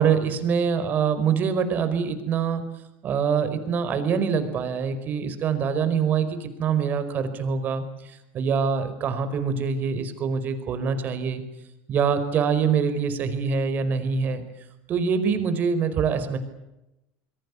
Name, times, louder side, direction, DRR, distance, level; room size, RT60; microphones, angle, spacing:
voice 1, 0.0-2.6 3.0-11.4 11.9-14.4 14.9-16.4, right 6 dB, 40° right, 10 dB, 4.8 m, -24 dB
27.0 x 22.5 x 8.4 m, 0.92 s
cardioid pair, 140°, 5 cm